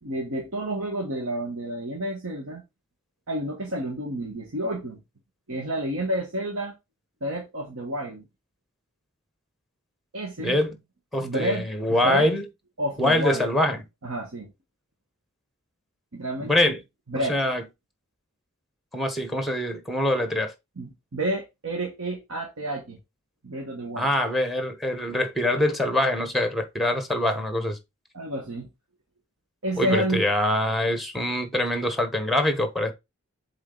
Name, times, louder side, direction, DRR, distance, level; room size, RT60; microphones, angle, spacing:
voice 1, 0.0-2.6 3.3-5.0 5.5-6.7 7.2-8.2 10.1-10.6 11.2-12.3 12.8-13.5 14.0-14.5 16.1-16.8 17.1-17.4 20.8-23.0 23.4-24.1 28.1-28.7 29.6-30.2, right 1 dB, 70° right, 1.4 m, -30 dB
voice 2, 10.4-10.8 11.1-12.4 13.0-13.8 16.4-16.8 17.2-17.6 18.9-20.5 24.0-27.8 29.8-32.9, left 1 dB, ahead, 1.2 m, -24 dB
7.5 x 3.9 x 3.9 m
head